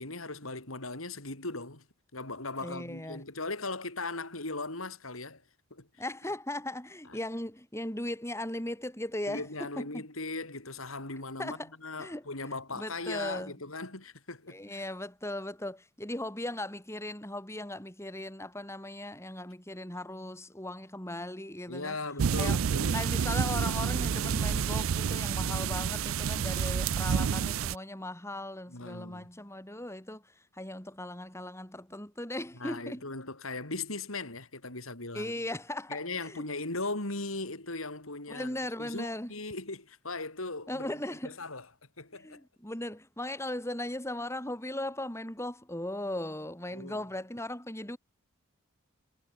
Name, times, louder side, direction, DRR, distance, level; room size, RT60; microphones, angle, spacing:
voice 1, 0.0-1.9 2.1-5.4 5.7-5.9 9.3-14.8 21.7-23.0 28.7-29.3 32.6-35.3 35.9-41.0 41.2-41.7 42.0-42.4 46.7-47.0, left 3 dB, 85° left, 5.8 m, -38 dB
voice 2, 2.6-3.2 6.0-10.1 11.4-11.7 12.0-13.5 14.5-22.0 22.4-22.6 22.9-33.1 35.1-36.4 38.3-39.3 40.7-41.4 42.1-48.0, left 1 dB, 15° left, 6.6 m, -38 dB
sound 1, 22.2-27.8, right 7 dB, 80° right, 0.4 m, -29 dB
head